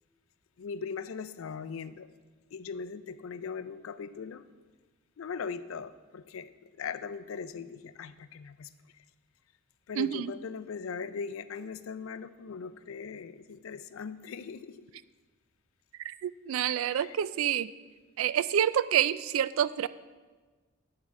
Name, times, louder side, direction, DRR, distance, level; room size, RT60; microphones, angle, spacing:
voice 1, 0.6-2.1 2.5-4.4 5.2-6.5 6.8-8.7 9.9-14.8 16.9-17.2, left 5 dB, 80° left, 14 dB, 0.4 m, -39 dB
voice 2, 10.0-10.3 16.0-17.7 18.2-19.9, right 9 dB, 90° right, 17 dB, 0.3 m, -28 dB
10.0 x 3.8 x 7.0 m, 1.4 s
head